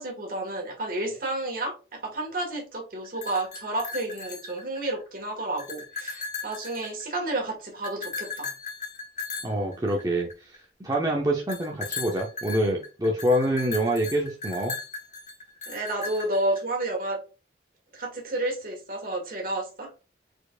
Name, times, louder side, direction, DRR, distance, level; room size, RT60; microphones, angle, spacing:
voice 1, 0.0-8.5 15.7-17.2 17.9-19.9, right 2 dB, 50° right, 1.7 m, -31 dB
sound 1, 3.0-5.0 5.4-7.3 7.8-10.6 11.5-16.6, left 4 dB, 40° left, 1.1 m, -37 dB
voice 2, 9.4-10.5 10.8-14.7, right 1 dB, 20° right, 0.7 m, -26 dB
4.7 x 4.4 x 2.4 m
head